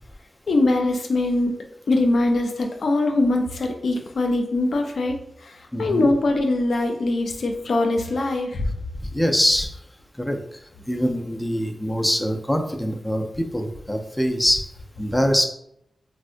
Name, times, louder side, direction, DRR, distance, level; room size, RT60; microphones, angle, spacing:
voice 1, 0.5-1.6 1.9-5.5 5.8-8.7, left 2 dB, 80° left, 3 dB, 0.4 m, -22 dB
voice 2, 5.7-6.1 9.1-9.7 10.2-10.4 10.9-14.6 15.0-15.5, equal, 10° left, 3 dB, 0.4 m, -23 dB
3.5 x 2.1 x 2.5 m, 0.75 s
cardioid pair, 65°, 0 cm